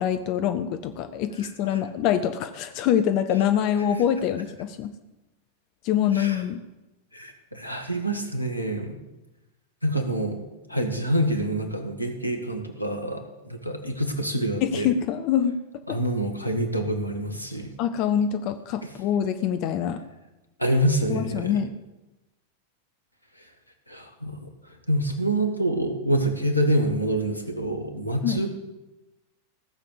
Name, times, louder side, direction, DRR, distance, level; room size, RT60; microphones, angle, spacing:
voice 1, 0.0-4.9 5.8-6.6 14.6-15.6 15.9-16.0 17.8-20.0 21.1-21.7 28.2-28.5, left 9 dB, 40° left, 10 dB, 0.7 m, -25 dB
voice 2, 1.4-1.8 6.1-6.4 7.1-9.0 9.8-10.4 10.7-14.9 15.9-17.7 20.6-21.6 23.9-24.5 24.9-28.5, right 1 dB, 85° left, 5 dB, 1.6 m, -26 dB
15.5 x 6.8 x 8.1 m, 1.0 s
figure-of-eight pair, 90°, 0 cm